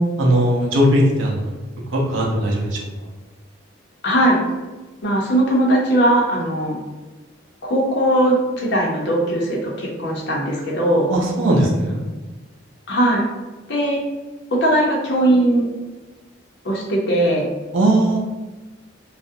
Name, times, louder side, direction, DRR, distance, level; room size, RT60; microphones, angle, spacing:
voice 1, 0.2-1.5 1.9-2.8 11.1-12.0 17.7-18.2, right 1 dB, 75° right, -1 dB, 0.6 m, -18 dB
voice 2, 4.0-4.4 5.0-6.8 7.6-11.1 12.9-13.2 13.7-14.0 14.5-15.7 16.6-17.4, right 1 dB, 60° left, -3 dB, 0.6 m, -19 dB
2.4 x 2.0 x 2.6 m, 1.2 s
head